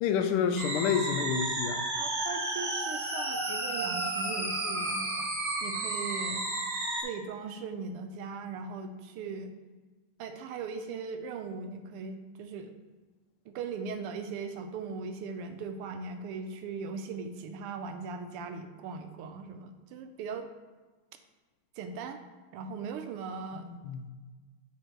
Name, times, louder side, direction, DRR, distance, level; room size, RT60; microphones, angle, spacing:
voice 1, 0.0-1.8 23.5-24.1, left 7 dB, 80° left, 8 dB, 1.4 m, -29 dB
sound 1, 0.6-7.0, right 2 dB, 50° right, 1.5 m, -32 dB
voice 2, 2.0-6.4 7.0-9.5 10.2-12.7 13.5-20.5 21.8-22.2 22.5-23.7, right 4 dB, 85° right, 7 dB, 1.6 m, -39 dB
8.8 x 3.5 x 4.4 m, 1.3 s
omnidirectional pair, 2.4 m